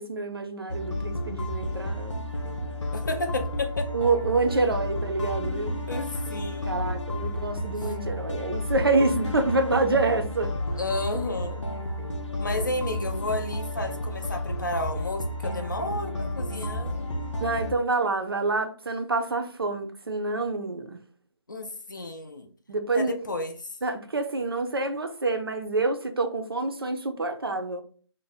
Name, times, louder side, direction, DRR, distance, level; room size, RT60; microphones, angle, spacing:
voice 1, 0.0-2.2 3.9-5.8 6.7-10.5 17.4-21.0 22.7-23.1 23.8-27.8, right 3 dB, 55° right, 0.5 m, -27 dB
sound 1, 0.7-17.7, left 1 dB, 85° left, 0.7 m, -31 dB
voice 2, 2.9-3.9 4.5-4.6 5.9-6.8 10.8-11.7 12.4-17.0 21.5-22.5 22.9-23.7, left 2 dB, 40° left, 0.5 m, -32 dB
2.5 x 2.1 x 3.9 m
figure-of-eight pair, 170°, 15 cm